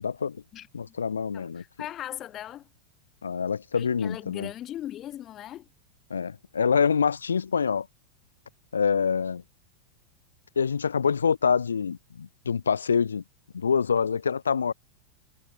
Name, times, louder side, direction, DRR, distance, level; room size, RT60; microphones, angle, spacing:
voice 1, 0.0-0.4 0.7-1.6 3.2-4.5 6.1-7.9 8.7-9.4 10.6-13.2 13.5-14.7, left 6 dB, 70° left, 0.4 m, -26 dB
voice 2, 1.3-2.7 3.7-5.7, left 12 dB, 30° left, 0.9 m, -39 dB
figure-of-eight pair, 90°, 0 cm